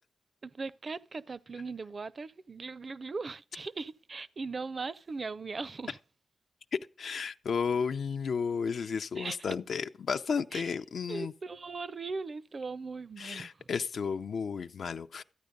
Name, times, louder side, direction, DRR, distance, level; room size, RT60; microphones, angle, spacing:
voice 1, 0.4-6.0 9.2-9.6 10.5-10.7 11.1-13.7, right 4 dB, 45° right, 0.5 m, -39 dB
voice 2, 7.0-11.3 13.2-15.2, left 6 dB, 80° left, 0.5 m, -33 dB
13.5 x 9.4 x 5.2 m
wide cardioid pair, 100°, 0 cm